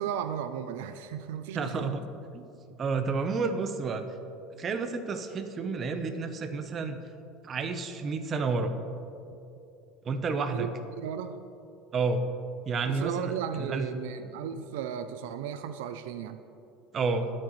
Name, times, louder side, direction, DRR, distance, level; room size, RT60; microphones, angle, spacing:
voice 1, 0.0-1.9 10.5-11.4 12.9-16.4, right 9 dB, 85° right, 10 dB, 0.5 m, -35 dB
voice 2, 1.5-2.0 2.3-2.4 2.8-4.0 4.6-7.0 7.4-8.7 10.0-10.7 11.9-12.2 12.7-13.9 16.9-17.3, right 4 dB, 30° right, 7 dB, 0.9 m, -30 dB
20.5 x 8.8 x 3.2 m, 2.7 s
supercardioid pair, 140°, 0 cm